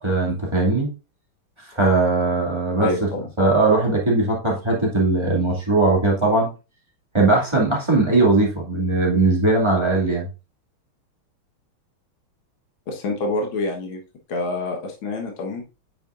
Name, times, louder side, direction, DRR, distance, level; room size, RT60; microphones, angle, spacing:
voice 1, 0.0-0.9 1.7-2.9 3.4-6.5 7.1-10.3, right 2 dB, 15° right, -4 dB, 2.2 m, -19 dB
voice 2, 2.8-3.3 12.9-14.0 14.3-15.6, left 2 dB, 70° left, 1 dB, 2.1 m, -27 dB
8.8 x 6.1 x 2.5 m, 0.30 s
omnidirectional pair, 2.3 m